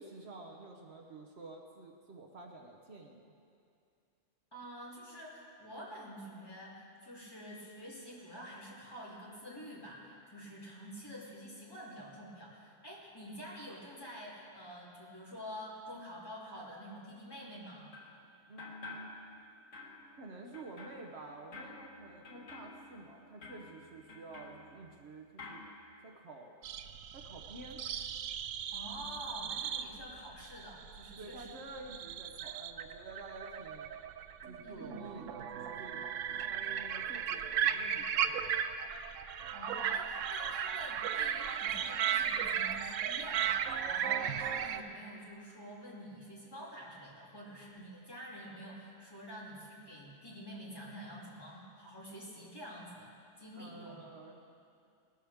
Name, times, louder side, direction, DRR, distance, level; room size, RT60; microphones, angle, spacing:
voice 1, 0.0-3.3 18.5-19.2 20.2-25.6 26.0-26.5 27.1-27.8 29.0-29.1 29.4-29.6 31.2-33.9 34.4-38.5 53.6-54.4, right 2 dB, 60° right, 1 dB, 1.1 m, -50 dB
voice 2, 4.5-17.9 28.7-31.5 34.6-35.0 39.3-54.1, equal, 20° left, -7 dB, 2.9 m, -48 dB
sound 1, 17.9-18.2 18.6-19.5 19.7-25.1 25.4-25.7, left 3 dB, 80° left, 1.9 m, -51 dB
sound 2, 26.6-44.8, right 9 dB, 90° right, 0.9 m, -36 dB
19.5 x 12.5 x 3.5 m, 2.5 s
omnidirectional pair, 1.3 m